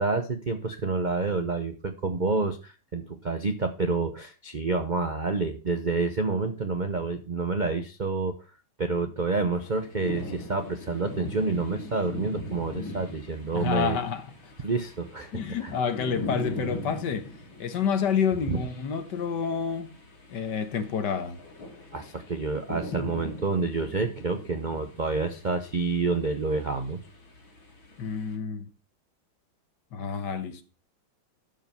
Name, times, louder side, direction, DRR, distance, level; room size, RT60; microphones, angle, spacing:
voice 1, 0.0-8.4 8.8-14.0 14.6-15.7 18.5-18.6 21.9-27.0, right 3 dB, 55° right, 0.5 m, -28 dB
sound 1, 9.5-28.3, left 1 dB, 85° left, 2.9 m, -41 dB
voice 2, 13.5-14.3 15.3-17.3 17.6-20.0 20.3-21.4 28.0-28.7 29.9-30.6, left 6 dB, 60° left, 1.6 m, -29 dB
12.5 x 5.2 x 5.5 m
omnidirectional pair, 2.2 m